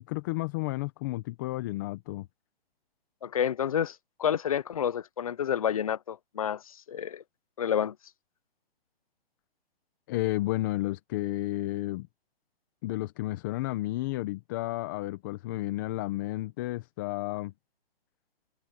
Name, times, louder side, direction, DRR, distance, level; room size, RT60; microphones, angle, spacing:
voice 1, 0.0-2.3 10.1-12.1 12.8-17.5, left 18 dB, 20° left, 0.9 m, -32 dB
voice 2, 3.2-6.6 6.9-7.2 7.6-7.9, left 9 dB, 35° left, 0.5 m, -29 dB
hypercardioid pair, 160°, 30 cm